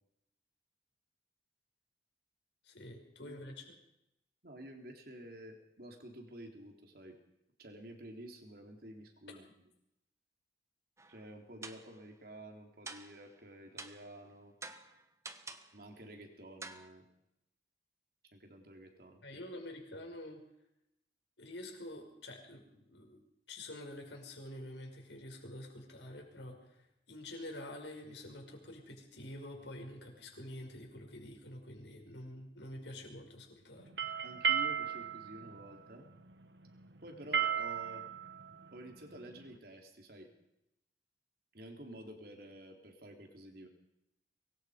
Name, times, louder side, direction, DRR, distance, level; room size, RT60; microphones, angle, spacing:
voice 1, 2.6-3.7 19.2-20.4 21.4-23.2 23.5-26.7 27.1-33.9, left 1 dB, 85° left, 2 dB, 5.8 m, -47 dB
voice 2, 4.4-7.2 7.6-9.4 11.1-14.5 15.7-17.1 18.2-19.4 34.2-36.1 37.0-38.0 38.7-40.3 41.5-43.7, right 1 dB, 55° right, 3 dB, 3.6 m, -50 dB
sound 1, 11.0-11.3 11.6-12.0 12.9-13.3 13.8-14.1 14.6-15.8 16.6-16.9, right 3 dB, 15° right, 1.2 m, -48 dB
sound 2, 33.8-39.5, right 8 dB, 75° right, 1.5 m, -35 dB
24.5 x 21.5 x 5.2 m, 0.83 s
head